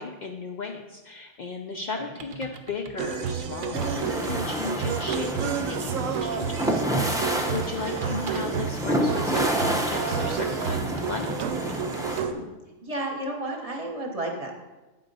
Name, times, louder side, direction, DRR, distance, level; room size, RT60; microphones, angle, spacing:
voice 1, 0.0-11.3, left 4 dB, 75° left, 2 dB, 0.4 m, -36 dB
sound 1, 1.8-1.9 2.2-5.3 5.7-5.8 6.2-8.7 9.4-12.3, right 4 dB, 55° right, 0.6 m, -45 dB
sound 2, 3.0-12.3, right 7 dB, 80° right, 1.0 m, -30 dB
sound 3, 3.7-12.2, equal, 5° right, 0.3 m, -29 dB
voice 2, 12.8-14.5, right 1 dB, 30° right, 1 dB, 0.9 m, -32 dB
8.5 x 3.8 x 5.3 m, 1.1 s
omnidirectional pair, 1.4 m